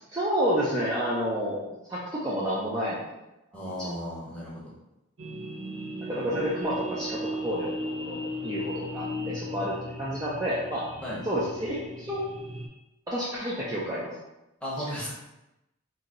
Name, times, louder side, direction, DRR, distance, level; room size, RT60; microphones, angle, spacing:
voice 1, 0.1-1.6 1.9-3.0 3.8-3.9 6.1-10.9 11.2-12.2 13.1-14.2, equal, 15° right, -8 dB, 0.5 m, -30 dB
voice 2, 3.5-4.7 11.0-11.2 14.6-15.1, equal, 5° left, -7 dB, 0.8 m, -35 dB
sound 1, 5.2-12.7, equal, 65° right, 0.5 m, -37 dB
2.7 x 2.6 x 4.1 m, 0.93 s
head